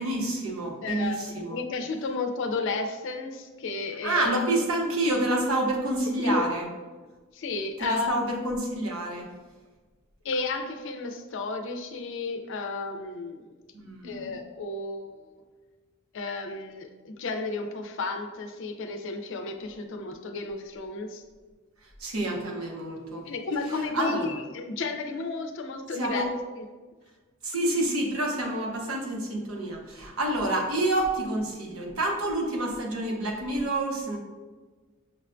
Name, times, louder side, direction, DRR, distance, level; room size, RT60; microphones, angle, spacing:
voice 1, 0.0-1.6 4.0-6.7 7.8-9.3 13.7-14.4 22.0-23.3 23.9-24.4 25.9-26.3 27.4-34.2, right 1 dB, 85° right, 0 dB, 0.8 m, -28 dB
voice 2, 0.8-4.4 6.2-6.4 7.3-8.2 10.2-13.5 14.0-15.4 16.1-21.2 23.2-26.3, left 3 dB, 65° left, 4 dB, 0.5 m, -33 dB
6.1 x 2.5 x 2.2 m, 1.3 s
head